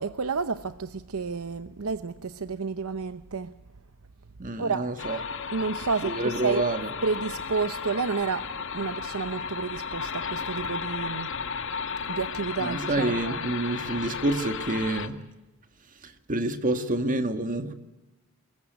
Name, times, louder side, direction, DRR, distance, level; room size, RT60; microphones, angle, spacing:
voice 1, 0.0-3.5 4.6-4.9 5.5-6.6 7.0-11.3 12.1-13.4, right 4 dB, 80° right, 0.8 m, -30 dB
voice 2, 4.4-5.2 6.0-6.9 12.6-15.3 16.0-17.7, right 2 dB, 40° right, 1.7 m, -28 dB
sound 1, 5.0-15.1, left 5 dB, 65° left, 1.6 m, -34 dB
23.5 x 21.5 x 9.3 m
head